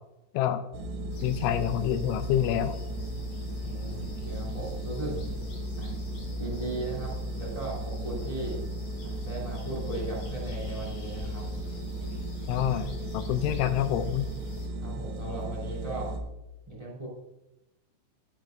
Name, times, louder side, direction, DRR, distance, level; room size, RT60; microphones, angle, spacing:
sound 1, 0.7-16.2, equal, 80° right, 2.1 m, -35 dB
sound 2, 1.1-14.7, left 1 dB, 65° left, 5.3 m, -45 dB
voice 1, 1.2-2.8 12.5-14.3, left 11 dB, 85° left, 10 dB, 2.8 m, -27 dB
voice 2, 3.6-5.1 5.8-5.9 6.4-8.6 9.0-11.4 13.2-13.6 14.8-16.1 16.6-17.1, right 2 dB, 15° right, -3 dB, 1.2 m, -37 dB
12.5 x 11.0 x 2.6 m, 0.95 s
omnidirectional pair, 5.9 m